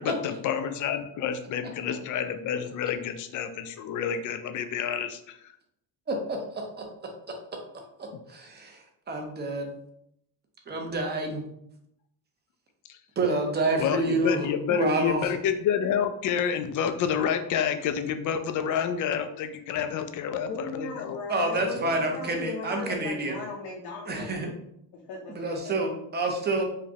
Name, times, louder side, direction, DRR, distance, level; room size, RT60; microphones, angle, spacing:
voice 1, 0.0-5.3 12.9-13.0 13.8-21.2 21.8-22.0, left 8 dB, 50° left, 9 dB, 0.4 m, -29 dB
voice 2, 6.1-6.8 8.0-9.7 10.7-11.4 13.2-14.4 14.7-15.3 21.3-23.4 24.1-24.5 25.3-26.6, right 2 dB, 25° right, 2 dB, 0.7 m, -28 dB
voice 3, 20.5-24.4 24.9-25.8, left 3 dB, 65° left, -2 dB, 0.8 m, -38 dB
4.9 x 2.2 x 2.8 m, 0.75 s
cardioid pair, 130°, 42 cm